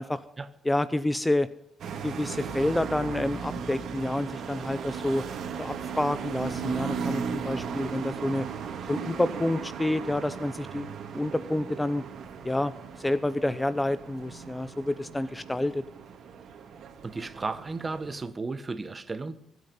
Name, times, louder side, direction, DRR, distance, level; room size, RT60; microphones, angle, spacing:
voice 1, 0.6-1.5 2.0-5.2 5.6-8.5 8.9-12.0 12.4-12.7 13.0-15.8, left 1 dB, 10° left, 0.6 m, -28 dB
sound 1, 1.8-18.3, right 6 dB, 65° right, 2.5 m, -37 dB
voice 2, 17.0-19.4, right 3 dB, 25° right, 1.3 m, -34 dB
24.0 x 9.4 x 5.5 m
cardioid pair, 90°, 0 cm